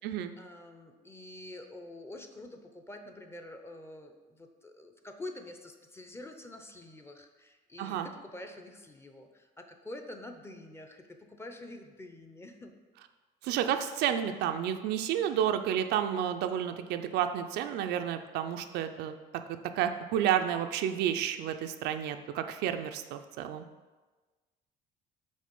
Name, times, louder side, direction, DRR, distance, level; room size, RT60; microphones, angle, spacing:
voice 1, 0.4-12.7, left 1 dB, 15° left, 5 dB, 0.6 m, -47 dB
voice 2, 13.4-19.1 19.8-23.6, right 10 dB, 80° right, 7 dB, 0.4 m, -31 dB
5.3 x 3.8 x 5.3 m, 1.3 s
cardioid pair, 110°, 17 cm